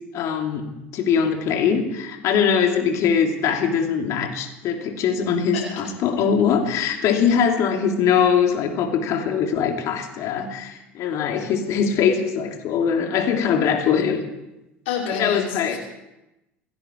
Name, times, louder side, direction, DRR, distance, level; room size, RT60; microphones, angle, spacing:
voice 1, 0.1-14.2 15.0-15.8, left 7 dB, 55° left, 2 dB, 3.3 m, -22 dB
voice 2, 14.9-15.8, left 7 dB, 70° left, -3 dB, 5.5 m, -28 dB
28.0 x 10.5 x 4.7 m, 0.95 s
hypercardioid pair, 75°, 6 cm